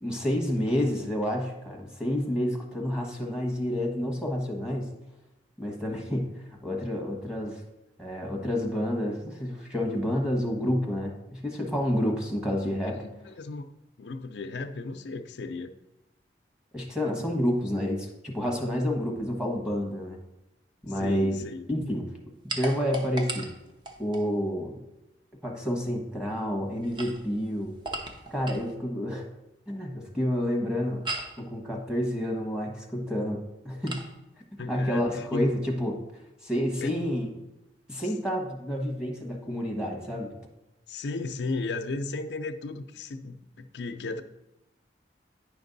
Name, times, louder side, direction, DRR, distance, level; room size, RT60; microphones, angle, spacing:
voice 1, 0.0-4.9 5.6-6.3 6.6-7.6 8.0-13.0 16.7-20.2 20.8-21.4 21.7-22.1 22.4-23.5 24.0-24.8 25.4-27.8 28.3-29.2 29.7-31.1 31.4-34.0 34.5-36.0 36.4-37.3 37.9-40.4, equal, 5° right, -1 dB, 1.2 m, -29 dB
voice 2, 13.0-13.7 14.0-15.7 20.9-21.7 34.6-35.5 36.8-37.1 40.9-44.2, left 3 dB, 80° left, 8 dB, 0.5 m, -35 dB
sound 1, 22.5-24.3 26.8-28.7 31.1-31.4 33.9-34.1, right 2 dB, 25° right, 0.7 m, -37 dB
9.6 x 5.2 x 4.0 m, 0.95 s
head